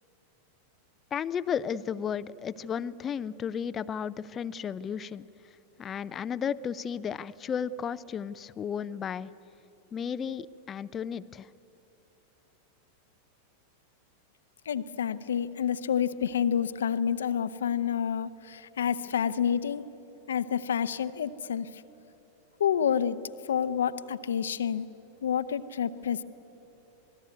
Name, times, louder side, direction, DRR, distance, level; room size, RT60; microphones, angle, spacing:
voice 1, 1.1-5.3 5.8-9.3 9.9-11.5, left 7 dB, 25° left, 15 dB, 0.5 m, -33 dB
voice 2, 14.7-19.9 20.3-21.8 22.6-24.9 25.2-26.2, left 8 dB, 65° left, 14 dB, 0.8 m, -29 dB
26.5 x 20.0 x 9.5 m, 2.9 s
figure-of-eight pair, 90°, 0 cm